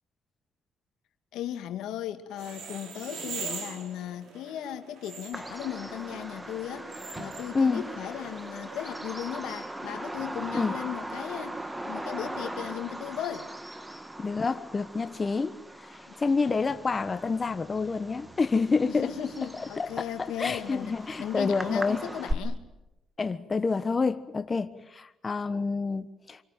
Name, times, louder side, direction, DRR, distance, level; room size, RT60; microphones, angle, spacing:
voice 1, 1.3-13.5 18.9-22.6, left 11 dB, 90° left, 2.2 m, -37 dB
sound 1, 2.3-8.8, right 5 dB, 75° right, 6.2 m, -42 dB
Bird vocalization bird call bird song, 5.3-22.3, right 1 dB, 10° right, 1.8 m, -39 dB
voice 2, 7.5-7.9 10.5-10.7 14.2-19.1 19.5-22.0 23.2-26.4, left 4 dB, 30° left, 1.3 m, -28 dB
26.5 x 24.0 x 9.2 m
cardioid pair, 90°, 0 cm